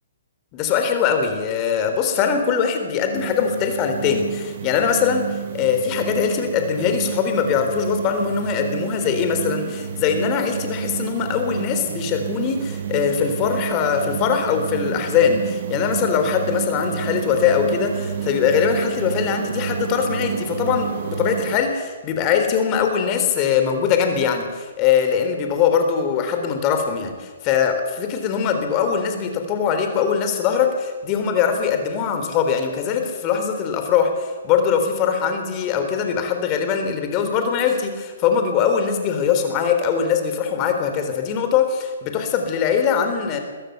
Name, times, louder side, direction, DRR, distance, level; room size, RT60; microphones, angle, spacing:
voice 1, 0.5-43.4, left 7 dB, 30° left, 6 dB, 3.8 m, -21 dB
sound 1, 3.2-21.6, right 9 dB, 55° right, 1.6 m, -30 dB
22.5 x 14.5 x 8.1 m, 1.4 s
hypercardioid pair, 150°, 0 cm